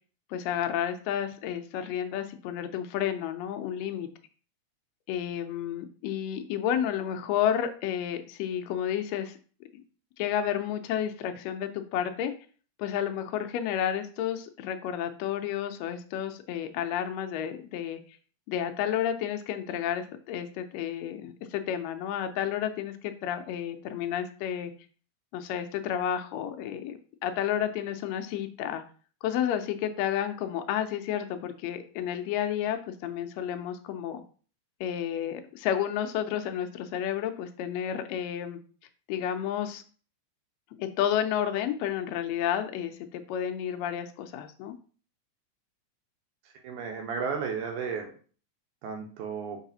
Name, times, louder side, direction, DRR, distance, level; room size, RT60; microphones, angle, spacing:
voice 1, 0.3-4.1 5.1-9.4 9.7-9.8 10.2-12.3 12.8-18.0 18.5-24.7 25.3-28.8 29.2-34.2 34.8-38.6 39.1-39.8 40.8-44.7, left 10 dB, 85° left, 7 dB, 1.5 m, -31 dB
voice 2, 46.6-48.1 48.8-49.6, right 6 dB, 85° right, 2 dB, 2.1 m, -33 dB
4.6 x 4.0 x 2.7 m, 0.41 s
omnidirectional pair, 3.5 m